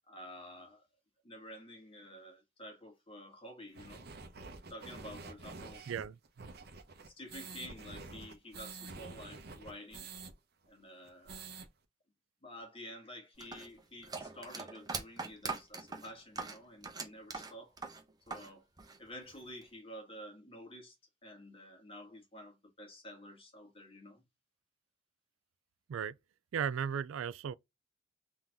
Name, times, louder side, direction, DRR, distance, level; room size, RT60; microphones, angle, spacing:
voice 1, 0.1-0.9 1.2-4.1 4.7-5.8 7.1-10.1 10.7-11.4 12.4-17.8 18.3-18.7 19.0-21.0 21.2-24.2, left 1 dB, 30° left, 1.6 m, -50 dB
sound 1, 3.7-10.3 10.6-10.7 11.0-11.7, right 3 dB, 55° right, 0.8 m, -48 dB
voice 2, 5.9-6.5 25.9-26.2 26.5-27.5, right 7 dB, 90° right, 0.3 m, -36 dB
sound 2, 13.4-18.5 18.8-19.6, right 4 dB, 20° right, 0.8 m, -42 dB
3.9 x 2.8 x 3.5 m
head